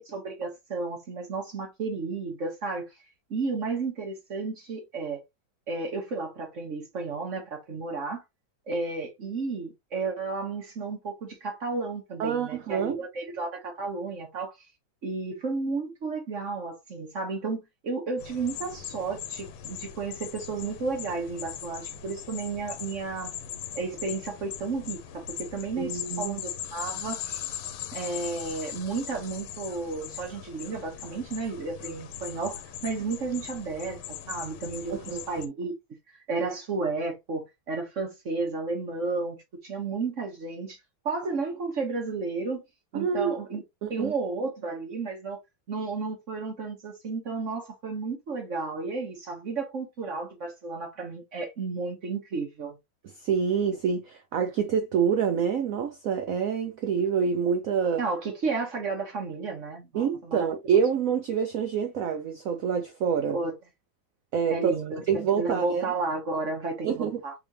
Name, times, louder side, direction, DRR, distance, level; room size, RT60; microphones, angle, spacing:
voice 1, 0.0-2.9 3.3-5.2 5.7-8.2 8.7-14.5 15.0-23.3 23.7-27.4 27.9-35.7 36.1-40.8 41.0-42.6 42.9-43.6 43.9-45.4 45.7-52.8 58.0-60.5 63.3-63.5 64.5-67.3, right 4 dB, 45° right, 1.2 m, -32 dB
voice 2, 12.2-13.0 25.8-26.4 34.9-35.4 42.9-43.4 43.8-44.1 53.0-58.0 59.9-63.4 64.3-64.7 65.1-65.8 66.8-67.2, right 7 dB, 80° right, 0.7 m, -27 dB
sound 1, 18.2-35.5, left 10 dB, 85° left, 1.5 m, -40 dB
3.7 x 3.3 x 2.7 m
omnidirectional pair, 2.1 m